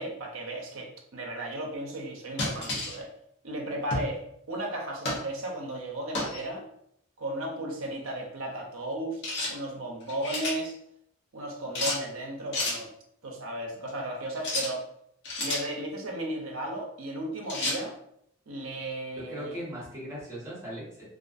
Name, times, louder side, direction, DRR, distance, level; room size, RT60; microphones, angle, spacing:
voice 1, 0.0-3.1 3.4-4.2 4.5-6.6 7.2-9.2 9.5-10.8 11.3-12.9 13.2-14.8 15.4-18.0 18.5-19.6, right 1 dB, 70° right, 1 dB, 0.6 m, -35 dB
sound 1, 2.4-3.0 3.9-4.1 5.0-5.3 6.1-6.4 9.2-9.5 10.0-10.6 11.7-12.0 12.5-12.8 14.4-14.7 15.2-15.7 17.5-17.8, left 2 dB, 55° left, 0.7 m, -31 dB
voice 2, 19.1-21.0, right 1 dB, 15° right, -8 dB, 1.0 m, -38 dB
2.4 x 2.4 x 2.4 m, 0.72 s
head